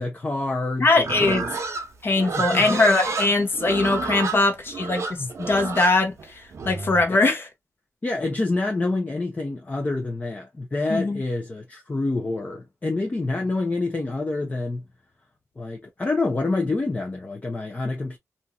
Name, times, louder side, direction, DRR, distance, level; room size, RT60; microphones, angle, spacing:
voice 1, 0.0-1.5 2.4-2.8 4.3-4.4 5.2-5.3 7.1-7.2 8.0-14.8 15.6-18.2, left 2 dB, 25° left, 0.7 m, -27 dB
voice 2, 0.8-1.5 2.0-6.1 6.6-7.5 10.9-11.2, left 3 dB, 45° left, 1.0 m, -21 dB
Livestock farm animals working animals, 1.0-7.1, right 4 dB, 60° right, 0.7 m, -30 dB
2.9 x 2.6 x 2.2 m
wide cardioid pair, 125°, 5 cm